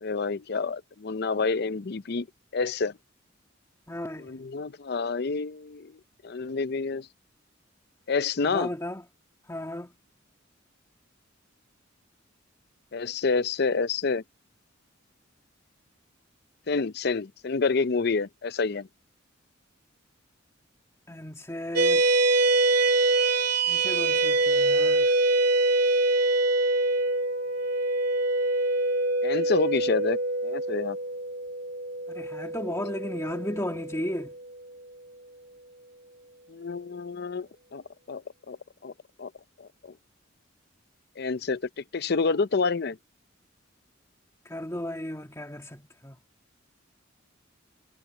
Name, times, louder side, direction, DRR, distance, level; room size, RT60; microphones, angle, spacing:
voice 1, 0.0-2.3 2.5-2.9 4.2-5.9 6.2-7.1 8.1-8.7 12.9-14.2 16.7-18.9 29.2-30.2 30.4-31.0 36.5-37.8 38.1-38.2 38.5-38.6 38.8-38.9 39.2-39.3 41.2-41.6 41.9-43.0, left 4 dB, 55° left, 0.6 m, -28 dB
voice 2, 3.9-4.3 8.4-9.1 9.5-9.9 21.1-22.1 23.7-25.1 32.1-34.3 44.5-46.2, left 1 dB, 15° left, 2.2 m, -35 dB
sound 1, 21.8-34.4, right 2 dB, 50° right, 3.0 m, -24 dB
head